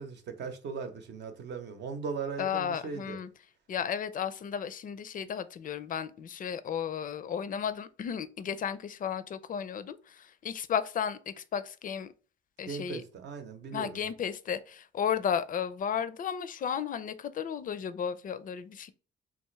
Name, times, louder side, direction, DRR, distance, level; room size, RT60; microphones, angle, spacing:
voice 1, 0.0-3.2 12.7-14.1, right 5 dB, 60° right, 0.8 m, -38 dB
voice 2, 2.4-3.3 3.7-12.1 12.6-13.0 13.7-18.9, left 8 dB, 45° left, 0.4 m, -34 dB
3.5 x 2.5 x 3.1 m
cardioid pair, 90°, 20 cm